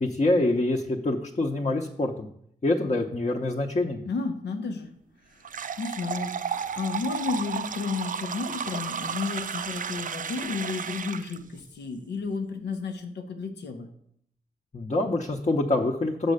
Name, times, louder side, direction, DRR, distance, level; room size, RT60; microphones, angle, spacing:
voice 1, 0.0-2.3 2.6-4.0 14.7-16.3, left 2 dB, 40° left, 0 dB, 0.9 m, -25 dB
voice 2, 4.0-4.9 5.3-5.4 5.8-13.9, left 4 dB, 85° left, 6 dB, 0.8 m, -32 dB
sound 1, 5.4-11.4, right 7 dB, 50° right, 0.4 m, -33 dB
6.5 x 4.4 x 6.5 m, 0.69 s
supercardioid pair, 40°, 17 cm